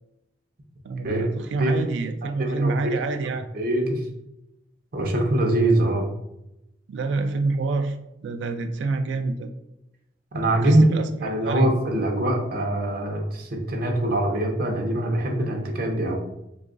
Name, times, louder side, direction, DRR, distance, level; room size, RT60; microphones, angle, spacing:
voice 1, 0.8-3.5 6.9-8.0 8.2-9.5 10.6-11.7, right 3 dB, 80° right, 7 dB, 0.3 m, -27 dB
voice 2, 2.4-2.7 3.5-4.0 4.9-6.0 10.3-10.8 11.2-16.2, right 1 dB, 55° right, 1 dB, 0.7 m, -23 dB
3.0 x 2.4 x 3.8 m, 0.87 s
head